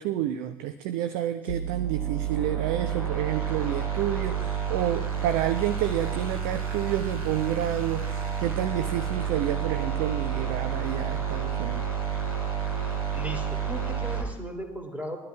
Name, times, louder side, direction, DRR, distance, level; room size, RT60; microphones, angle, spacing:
voice 1, 0.0-4.4 4.7-11.9, right 11 dB, 50° right, 10 dB, 0.6 m, -29 dB
sound 1, 1.5-14.2, right 8 dB, 80° right, 2.2 m, -30 dB
voice 2, 13.1-15.2, equal, 10° right, 2 dB, 2.7 m, -37 dB
22.0 x 12.5 x 2.4 m, 1.1 s
figure-of-eight pair, 70°, 18 cm